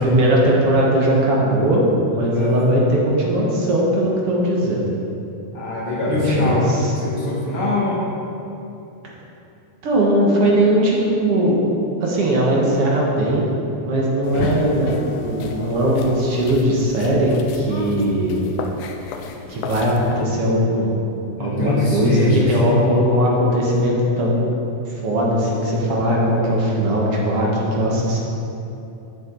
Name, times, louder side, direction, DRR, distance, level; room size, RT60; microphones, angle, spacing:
voice 1, 0.0-1.8 2.1-4.9 6.1-6.9 9.8-11.6 12.0-13.5 13.8-18.4 19.5-21.0 21.4-24.5 24.9-28.2, right 1 dB, 55° right, -4 dB, 2.1 m, -19 dB
voice 2, 2.3-2.8 5.5-6.7 7.0-8.0 14.3-14.4 21.4-22.8, left 2 dB, 50° left, -4 dB, 2.3 m, -22 dB
sound 1, 14.2-20.2, left 4 dB, 90° left, 2.2 m, -31 dB
11.0 x 7.5 x 4.0 m, 2.8 s
omnidirectional pair, 3.5 m